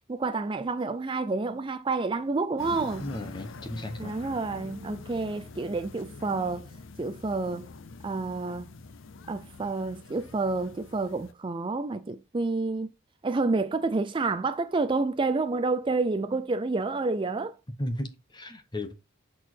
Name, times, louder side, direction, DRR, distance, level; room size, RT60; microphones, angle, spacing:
voice 1, 0.1-3.1 4.0-6.7 7.0-7.7 8.0-8.7 9.3-12.9 13.2-17.5, right 3 dB, 25° right, 0.4 m, -29 dB
sound 1, 2.6-11.3, left 4 dB, 65° left, 0.5 m, -45 dB
voice 2, 3.0-4.1 17.8-18.9, left 1 dB, 20° left, 0.9 m, -35 dB
6.2 x 4.4 x 4.4 m
head